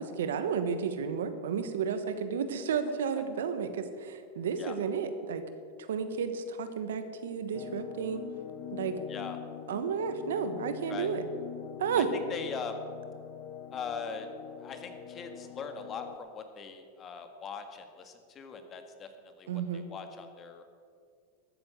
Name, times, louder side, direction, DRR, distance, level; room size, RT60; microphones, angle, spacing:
voice 1, 0.0-5.4 5.8-8.2 8.7-9.0 9.7-11.2 11.8-12.1 19.5-19.9, right 6 dB, 85° right, 10 dB, 1.2 m, -32 dB
sound 1, 7.5-16.2, left 10 dB, 50° left, 0.9 m, -44 dB
voice 2, 12.3-12.8 13.7-14.3 14.6-20.6, left 5 dB, 30° left, 7 dB, 1.7 m, -41 dB
13.5 x 8.9 x 7.7 m, 2.2 s
hypercardioid pair, 110°, 0 cm